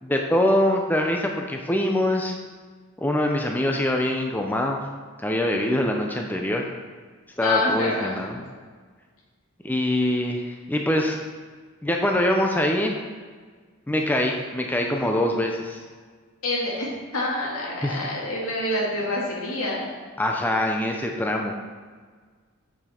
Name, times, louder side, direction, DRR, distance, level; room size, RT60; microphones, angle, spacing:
voice 1, 0.0-2.3 3.0-4.8 5.2-6.6 7.4-8.4 9.6-11.2 11.8-12.9 13.9-15.8 17.8-17.9 20.2-21.5, left 1 dB, 10° left, 1 dB, 0.5 m, -24 dB
voice 2, 7.4-8.3 16.4-19.9, left 2 dB, 85° left, -4 dB, 2.2 m, -27 dB
7.0 x 6.2 x 4.3 m, 1.5 s
head